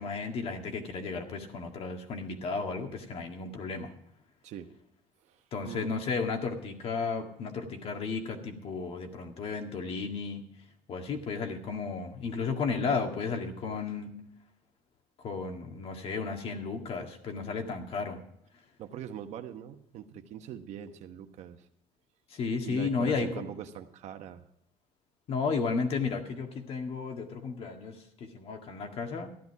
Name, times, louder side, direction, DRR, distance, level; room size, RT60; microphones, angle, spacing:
voice 1, 0.0-3.9 5.5-10.4 10.9-14.1 15.2-18.2 22.3-23.5 25.3-29.3, left 4 dB, 55° left, 4 dB, 2.0 m, -33 dB
voice 2, 18.8-21.7 22.7-24.4, right 9 dB, 70° right, 7 dB, 1.1 m, -42 dB
13.0 x 11.0 x 4.7 m, 0.73 s
cardioid pair, 130°, 12 cm